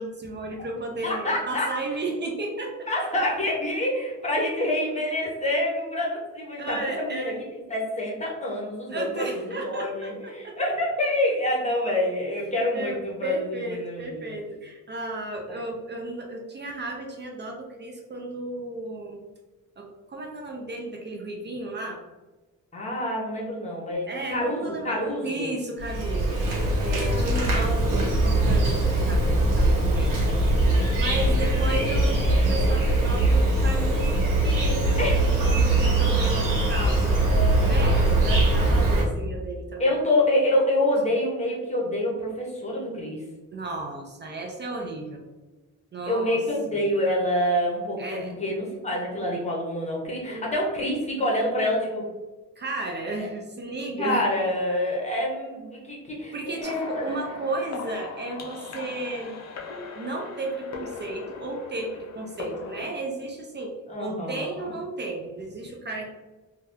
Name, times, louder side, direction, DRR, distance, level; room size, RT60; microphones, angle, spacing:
voice 1, 0.0-2.9 6.6-7.4 8.9-10.7 12.7-19.2 19.8-22.0 24.1-30.7 31.0-37.2 37.6-39.9 43.5-45.2 45.9-46.4 46.7-46.8 48.0-48.3 50.3-50.5 52.6-54.3 56.3-59.4 59.9-63.7 64.0-66.0, right 2 dB, 35° right, 1 dB, 0.4 m, -34 dB
voice 2, 1.0-1.7 2.9-7.3 7.7-14.4 15.5-15.6 22.7-25.5 35.0-35.2 37.6-38.1 39.8-43.2 46.1-52.0 53.2-53.3 54.0-57.0 63.9-64.7, left 1 dB, 20° left, -2 dB, 0.7 m, -27 dB
Insect, 25.8-39.0, right 2 dB, 80° right, 1.0 m, -22 dB
sound 1, 56.6-62.9, left 4 dB, 55° left, 0.5 m, -39 dB
2.7 x 2.3 x 3.3 m, 1.2 s
wide cardioid pair, 160°, 33 cm